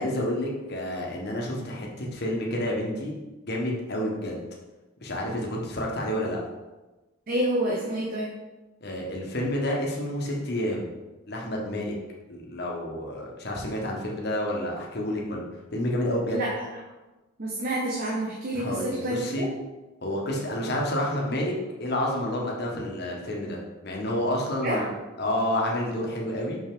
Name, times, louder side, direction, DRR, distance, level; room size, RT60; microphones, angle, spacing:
voice 1, 0.0-3.2 3.5-4.4 5.0-6.4 8.8-10.9 11.3-11.9 12.3-15.4 15.7-16.4 18.5-19.5 20.0-21.5 21.8-24.8 25.2-26.6, left 1 dB, 50° left, -2 dB, 1.3 m, -29 dB
voice 2, 7.3-8.3 16.3-16.7 17.4-19.5 24.6-24.8, right 1 dB, 45° right, -2 dB, 0.9 m, -28 dB
5.8 x 5.7 x 3.8 m, 1.1 s
head